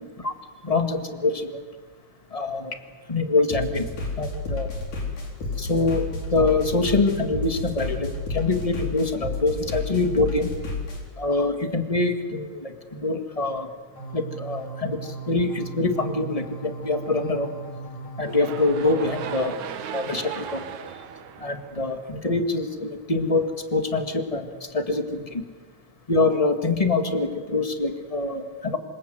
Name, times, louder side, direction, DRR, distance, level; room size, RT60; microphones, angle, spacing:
voice 1, 0.6-1.6 2.3-2.8 3.1-3.9 4.2-4.7 5.6-10.5 11.2-13.7 14.1-17.5 18.2-19.5 19.9-20.6 21.4-24.5 24.7-25.4 26.1-28.8, left 3 dB, 15° left, 6 dB, 1.5 m, -25 dB
sound 1, 3.5-11.0, left 3 dB, 85° left, 5.7 m, -31 dB
sound 2, 14.0-19.4, right 3 dB, 60° left, 6.0 m, -37 dB
sound 3, 18.2-22.4, right 8 dB, 75° right, 2.8 m, -36 dB
26.5 x 26.0 x 8.0 m, 1.5 s
omnidirectional pair, 3.5 m